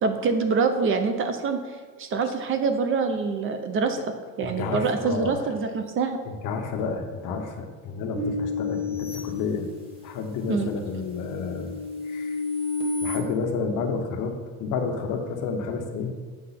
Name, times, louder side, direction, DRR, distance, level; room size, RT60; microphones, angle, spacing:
voice 1, 0.0-4.0 4.4-6.2 10.5-10.7, right 4 dB, 35° right, 7 dB, 0.5 m, -25 dB
voice 2, 4.4-5.4 6.2-9.7 10.0-11.7 12.1-12.4 13.0-14.3 14.6-16.1, left 5 dB, 60° left, 4 dB, 1.0 m, -30 dB
sound 1, 8.2-10.1 10.6-13.2, left 3 dB, 15° right, 1.4 m, -31 dB
7.5 x 5.7 x 4.1 m, 1.5 s
cardioid pair, 155°, 36 cm